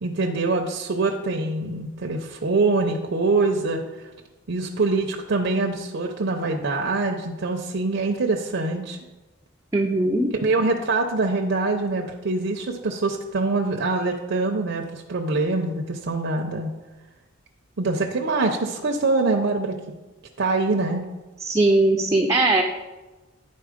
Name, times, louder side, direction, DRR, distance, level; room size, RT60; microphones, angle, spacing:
voice 1, 0.0-3.8 4.5-9.0 10.3-16.7 17.8-19.8 20.4-21.0, right 3 dB, 60° right, 2 dB, 0.6 m, -24 dB
voice 2, 9.7-10.3 21.4-22.6, right 2 dB, 15° right, 1 dB, 0.5 m, -19 dB
9.3 x 4.2 x 5.0 m, 1.2 s
head